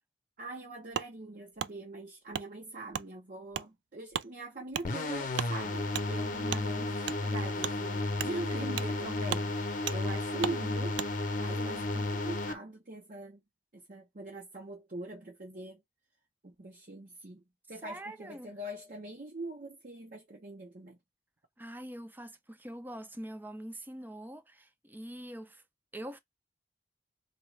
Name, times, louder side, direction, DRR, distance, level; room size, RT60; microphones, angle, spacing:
voice 1, 0.4-11.0 11.4-13.4 13.7-15.8 16.4-21.0, right 2 dB, 50° right, 0.8 m, -43 dB
Wood, 0.9-1.1 1.6-1.7 2.3-2.5 2.9-3.1 3.5-3.7 4.1-4.3 4.7-4.9 5.3-5.5 5.9-6.1 6.5-6.6 7.0-7.2 7.6-7.7 8.2-8.3 8.8-8.9 9.3-9.5 9.9-10.0 10.4-10.6 10.9-11.1, right 9 dB, 85° right, 0.3 m, -35 dB
sound 1, 4.8-12.5, left 2 dB, 50° left, 0.7 m, -33 dB
voice 2, 17.8-18.5 21.6-25.6 25.9-26.2, right 1 dB, 10° right, 0.5 m, -44 dB
4.2 x 2.4 x 3.2 m
head